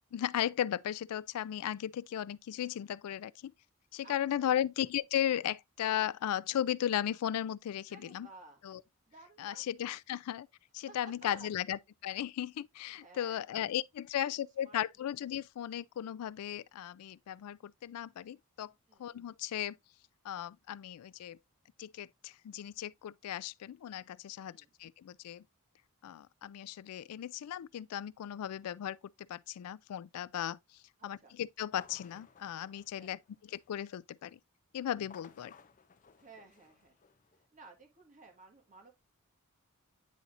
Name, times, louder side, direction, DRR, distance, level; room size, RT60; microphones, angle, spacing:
voice 1, 0.1-3.5 3.9-8.3 8.6-8.8 9.4-10.5 10.7-18.7 19.0-19.8 20.2-21.4 21.8-25.4 26.0-29.0 29.3-30.6 31.0-34.4 34.7-35.5, left 10 dB, 90° left, 0.3 m, -36 dB
voice 2, 4.0-4.6 7.9-8.6 9.1-9.6 10.9-11.0 11.2-11.5 13.0-13.6 14.2-14.3 14.6-15.2 18.9-19.2 24.4-24.7 31.0-31.3 33.0-33.2 36.2-37.0 37.5-38.9, right 3 dB, 35° right, 1.6 m, -56 dB
sound 1, 31.7-33.9 34.9-37.4, left 6 dB, 35° left, 0.5 m, -59 dB
9.3 x 4.1 x 2.5 m
head